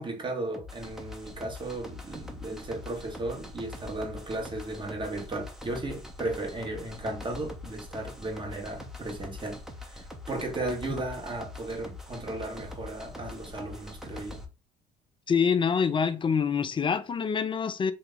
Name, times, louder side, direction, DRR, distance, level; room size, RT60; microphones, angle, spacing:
voice 1, 0.0-14.4, right 2 dB, 30° right, 1.4 m, -35 dB
sound 1, 0.5-14.4, left 2 dB, 5° right, 0.8 m, -43 dB
voice 2, 15.3-17.9, left 6 dB, 30° left, 0.5 m, -26 dB
2.8 x 2.7 x 3.9 m
supercardioid pair, 70°, 17 cm